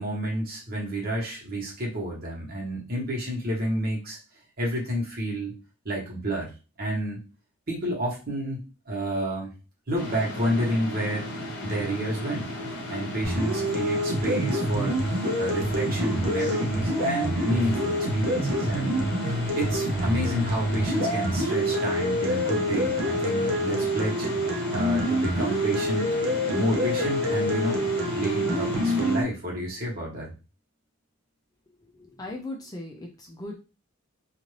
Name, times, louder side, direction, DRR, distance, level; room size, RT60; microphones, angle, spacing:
voice 1, 0.0-4.2 4.6-5.5 5.8-6.5 6.8-7.2 7.7-9.5 9.9-11.3 11.6-12.5 12.9-15.0 15.4-19.1 19.5-24.3 24.7-27.8 28.1-30.3, right 1 dB, 45° right, -3 dB, 1.1 m, -30 dB
sound 1, 9.9-29.2, left 1 dB, 50° left, 0.8 m, -35 dB
sound 2, 13.2-29.2, equal, 65° right, 0.7 m, -27 dB
voice 2, 31.9-33.6, left 2 dB, 15° left, 0 dB, 0.4 m, -38 dB
2.6 x 2.4 x 3.2 m, 0.31 s
head